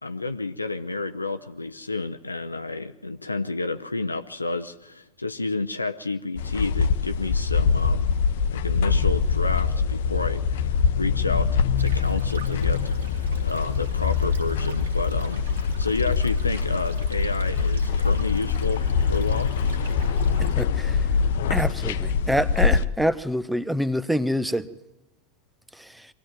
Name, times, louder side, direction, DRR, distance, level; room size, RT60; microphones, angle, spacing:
voice 1, 0.0-8.1 8.5-19.5, left 3 dB, 80° left, 0.7 m, -30 dB
sound 1, 6.4-22.8, left 6 dB, 55° left, 0.9 m, -23 dB
Stream, 11.8-20.5, right 4 dB, 65° right, 3.1 m, -45 dB
voice 2, 20.4-21.0 21.5-24.7 25.8-26.1, equal, 5° right, 0.9 m, -26 dB
24.0 x 17.0 x 9.2 m
figure-of-eight pair, 90°, 0 cm